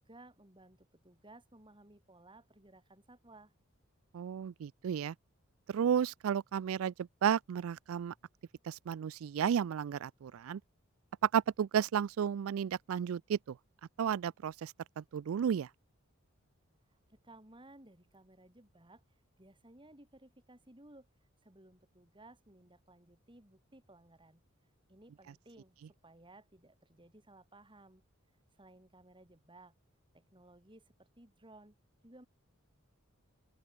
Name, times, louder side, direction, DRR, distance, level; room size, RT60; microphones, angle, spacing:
voice 1, 0.0-3.5 16.9-19.0 19.4-21.1 21.4-24.4 24.9-28.0 28.6-29.7 30.1-31.7 32.0-32.3, right 2 dB, 25° right, 3.7 m, -58 dB
voice 2, 4.1-5.1 5.7-8.1 8.6-10.6 11.2-13.6 14.0-15.7, right 8 dB, 80° right, 0.3 m, -33 dB
open air
head